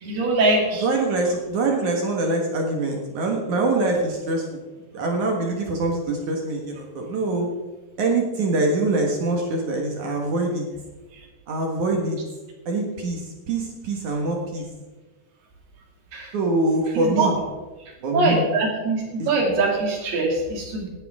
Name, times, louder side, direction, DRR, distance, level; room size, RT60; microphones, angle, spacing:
voice 1, 0.0-0.9 16.1-16.3 16.9-17.3 18.1-20.9, right 3 dB, 70° right, 0 dB, 4.7 m, -22 dB
voice 2, 0.8-4.6 4.9-7.5 8.0-10.6 11.5-12.2 12.7-14.6 16.3-17.4 18.0-18.4 19.2-19.3, right 2 dB, 55° right, 1 dB, 2.7 m, -24 dB
18.0 x 12.0 x 3.7 m, 1.2 s
omnidirectional pair, 4.7 m